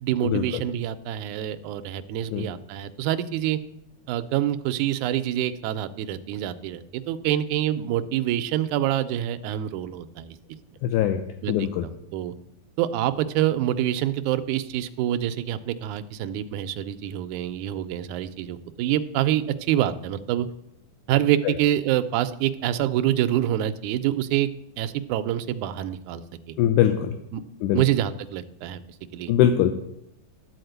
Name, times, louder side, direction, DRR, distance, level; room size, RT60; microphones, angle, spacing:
voice 1, 0.0-3.6 4.1-10.4 11.4-12.3 12.8-20.5 21.1-24.5 24.8-26.2 27.3-27.4 27.7-28.8 29.1-29.3, right 12 dB, 80° right, 10 dB, 2.0 m, -26 dB
voice 2, 10.8-11.2 11.5-11.9 21.5-21.6 26.6-27.1 27.6-27.8 29.3-29.7, left 11 dB, 80° left, 7 dB, 2.0 m, -21 dB
12.5 x 4.3 x 7.9 m, 0.81 s
omnidirectional pair, 3.6 m